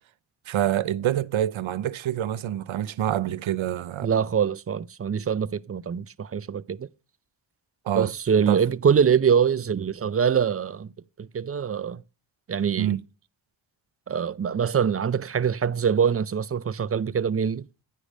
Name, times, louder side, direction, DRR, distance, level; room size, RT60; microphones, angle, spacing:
voice 1, 0.5-4.1 7.9-8.1 8.5-8.6 12.8-13.0, right 11 dB, 80° right, 0.6 m, -26 dB
voice 2, 4.0-6.9 7.9-10.9 11.2-12.0 12.5-13.0 14.1-17.6, right 7 dB, 30° right, 0.4 m, -24 dB
10.0 x 5.0 x 5.3 m
wide cardioid pair, 80°, 47 cm